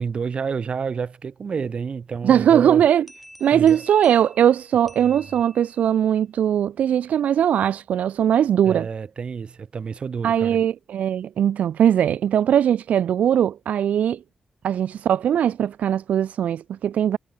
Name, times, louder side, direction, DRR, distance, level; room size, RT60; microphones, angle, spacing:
voice 1, 0.0-2.8 3.5-3.8 5.0-5.2 8.6-10.6, right 6 dB, 50° right, 1.5 m, -29 dB
voice 2, 2.2-3.1 3.4-8.9 10.2-14.2 14.6-17.2, right 9 dB, 90° right, 0.4 m, -20 dB
sound 1, 3.1-6.0, equal, 5° left, 2.3 m, -48 dB
wide cardioid pair, 120°, 2 cm